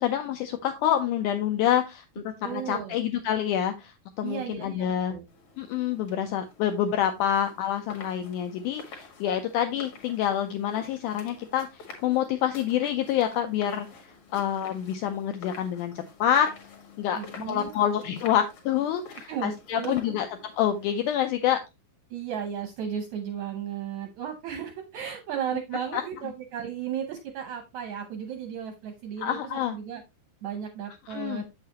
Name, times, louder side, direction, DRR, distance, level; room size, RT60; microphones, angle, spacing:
voice 1, 0.0-5.1 5.6-16.5 17.0-20.3 20.6-21.6 25.9-26.0 29.2-29.8 31.1-31.4, left 10 dB, 85° left, 6 dB, 1.8 m, -27 dB
voice 2, 2.4-3.0 4.2-5.2 17.1-17.7 19.3-20.1 22.1-30.0 30.4-31.4, right 8 dB, 75° right, 5 dB, 1.7 m, -35 dB
sound 1, 5.3-21.3, left 5 dB, 50° left, 2.2 m, -48 dB
7.7 x 6.6 x 2.9 m, 0.23 s
omnidirectional pair, 4.2 m